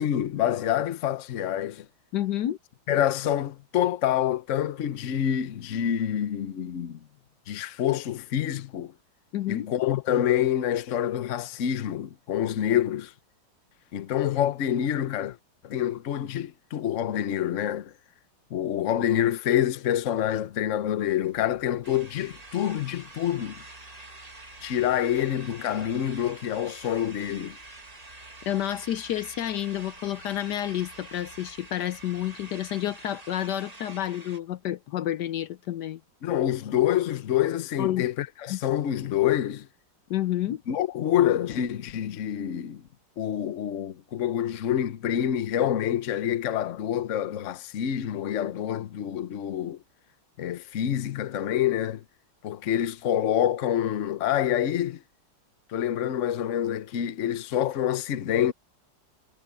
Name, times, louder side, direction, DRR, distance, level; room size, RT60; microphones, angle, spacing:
voice 1, 0.0-1.9 2.9-7.0 7.5-8.9 9.5-13.1 13.9-15.4 15.6-17.9 18.5-23.6 24.6-27.6 36.2-39.7 40.7-42.8 43.2-49.8 50.4-52.0 52.4-55.0 55.7-58.5, left 10 dB, 50° left, 1.1 m, -27 dB
voice 2, 2.1-2.6 9.3-9.7 28.5-36.0 37.8-38.0 38.5-38.6 40.1-40.6, left 12 dB, 70° left, 1.2 m, -29 dB
sound 1, 20.4-35.0, right 1 dB, 50° right, 7.5 m, -58 dB
sound 2, 21.8-34.4, right 2 dB, 20° right, 1.7 m, -47 dB
omnidirectional pair, 1.9 m